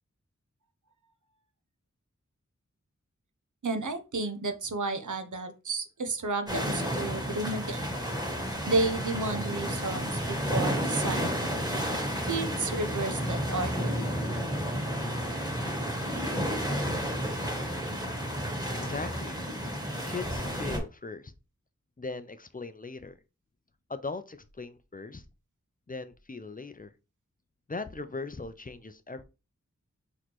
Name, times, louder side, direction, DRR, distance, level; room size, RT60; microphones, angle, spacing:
voice 1, 3.6-7.8 8.7-11.4 12.2-14.0, right 3 dB, 85° right, 8 dB, 0.6 m, -32 dB
sound 1, 6.5-20.8, equal, 15° right, 1.5 m, -31 dB
voice 2, 18.7-19.4 20.1-21.3 22.0-23.2 23.9-25.2 25.9-26.9 27.7-29.2, left 3 dB, 30° left, 11 dB, 0.4 m, -39 dB
4.1 x 3.1 x 3.0 m, 0.31 s
wide cardioid pair, 45°, 30 cm